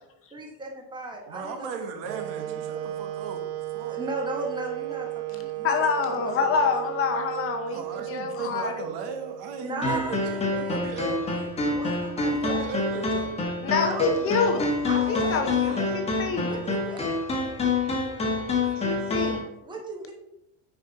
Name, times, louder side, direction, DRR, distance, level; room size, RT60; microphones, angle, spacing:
voice 1, 0.3-1.8 2.4-2.6 3.9-5.7 6.1-6.7 9.6-12.7 13.7-14.4 14.8-15.9 16.4-17.6 19.6-20.1, right 2 dB, 10° right, 1 dB, 1.0 m, -37 dB
voice 2, 1.3-3.4 3.7-4.0 7.7-11.4 12.3-13.4 15.0-16.0 18.5-19.0, right 5 dB, 65° right, 5 dB, 1.4 m, -37 dB
Wind instrument woodwind instrument, 2.0-10.0, right 14 dB, 90° right, 0.7 m, -35 dB
voice 3, 5.6-7.8 8.1-8.9 13.6-14.7 15.1-16.6 18.8-19.5, left 5 dB, 30° left, 5 dB, 0.7 m, -26 dB
sound 1, 9.8-19.4, left 3 dB, 15° left, 1.1 m, -27 dB
9.2 x 5.0 x 3.9 m, 0.86 s
cardioid pair, 170°, 45 cm